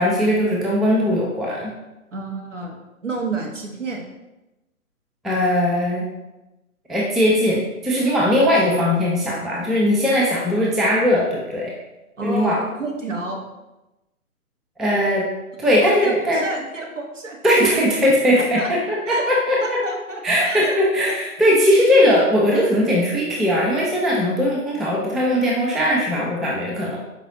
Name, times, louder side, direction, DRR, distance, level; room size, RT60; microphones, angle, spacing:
voice 1, 0.0-1.7 5.2-6.1 6.9-11.7 12.2-12.6 14.8-15.2 15.6-16.4 17.4-18.6 18.9-19.8 20.2-27.0, equal, ahead, -4 dB, 0.3 m, -19 dB
voice 2, 2.1-4.0 12.2-13.4 15.8-17.4 18.3-18.7 19.1-19.3 19.6-20.8 21.1-21.2, right 3 dB, 55° right, 1 dB, 0.8 m, -30 dB
4.7 x 2.8 x 2.5 m, 0.99 s
hypercardioid pair, 180°, 44 cm